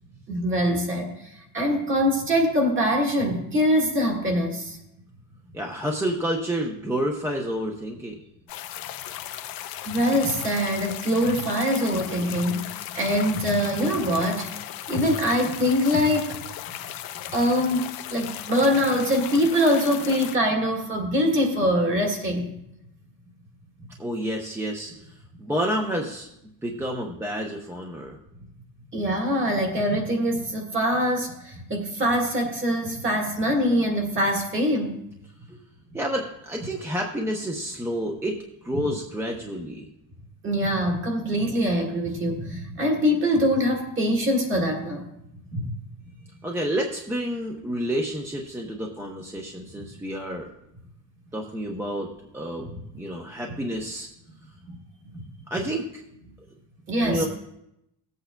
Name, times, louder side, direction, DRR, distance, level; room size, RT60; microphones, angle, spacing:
voice 1, 0.3-4.8 9.8-12.6 12.9-14.5 14.9-16.4 17.3-22.5 23.8-23.9 28.9-34.9 38.8-38.9 40.4-45.1 45.5-45.7 55.1-55.2 56.9-57.3, equal, 35° right, 2 dB, 1.7 m, -23 dB
voice 2, 5.5-8.2 24.0-24.9 25.4-26.3 26.6-28.2 35.5-35.6 35.9-39.9 46.4-50.5 51.3-52.7 52.9-54.1 55.5-56.0 57.0-57.3, equal, 5° right, 1 dB, 0.6 m, -29 dB
sound 1, 8.5-20.4, left 13 dB, 85° left, 0.7 m, -36 dB
17.0 x 8.2 x 2.2 m, 0.80 s
cardioid pair, 170°, 35 cm